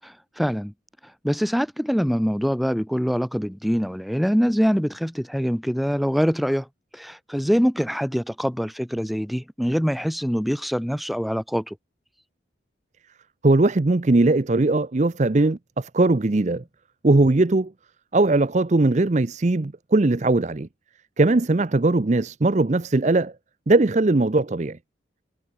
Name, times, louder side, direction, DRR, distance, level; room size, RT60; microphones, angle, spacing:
voice 1, 0.0-0.7 1.2-6.7 6.9-11.8, equal, ahead, 6.0 m, -24 dB
voice 2, 13.4-16.6 17.0-17.7 18.1-20.7 21.2-23.3 23.7-24.8, right 2 dB, 35° right, 0.6 m, -20 dB
head